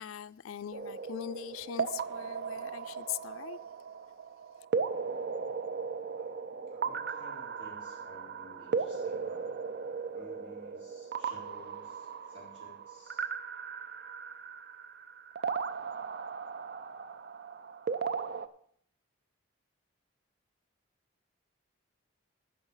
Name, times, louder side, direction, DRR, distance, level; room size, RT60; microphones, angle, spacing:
voice 1, 0.0-3.6, left 10 dB, 80° left, 0.4 m, -41 dB
sound 1, 0.7-18.5, right 5 dB, 50° right, 0.5 m, -37 dB
voice 2, 6.7-9.5 10.1-13.3, right 1 dB, 30° right, 4.6 m, -54 dB
15.0 x 5.8 x 5.5 m
head